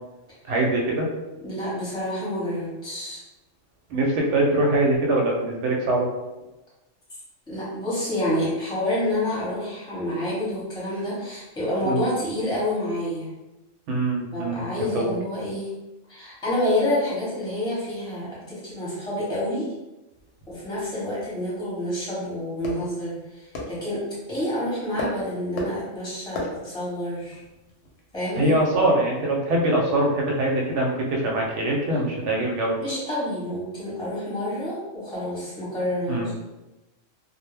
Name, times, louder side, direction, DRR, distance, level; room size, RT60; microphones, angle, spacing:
voice 1, 0.5-1.1 3.9-6.1 11.8-12.0 13.9-15.1 28.4-32.8 36.1-36.3, right 1 dB, 70° right, 0 dB, 0.9 m, -23 dB
voice 2, 1.4-3.2 7.5-13.3 14.3-15.7 16.1-19.7 20.5-24.0 24.3-27.4 28.1-28.5 32.8-36.3, left 1 dB, 5° left, -8 dB, 0.8 m, -28 dB
sound 1, 20.1-28.9, left 2 dB, 65° left, 0.8 m, -39 dB
2.1 x 2.1 x 3.2 m, 1.0 s
omnidirectional pair, 1.3 m